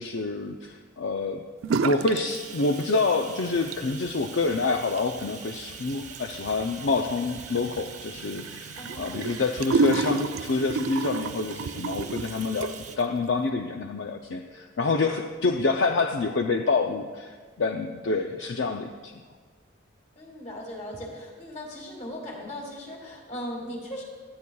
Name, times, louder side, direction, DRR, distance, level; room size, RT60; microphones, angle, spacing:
voice 1, 0.0-1.4 1.8-19.2, left 3 dB, 60° left, 4 dB, 0.5 m, -27 dB
sound 1, 1.6-2.2 2.5-3.2 3.5-13.0, right 4 dB, 85° right, 0.4 m, -31 dB
Bathtub (filling or washing), 2.3-13.0, right 6 dB, 35° right, 0.9 m, -43 dB
voice 2, 8.7-9.3 20.2-24.0, equal, 35° left, -1 dB, 2.3 m, -38 dB
18.0 x 12.0 x 2.3 m, 1.5 s
head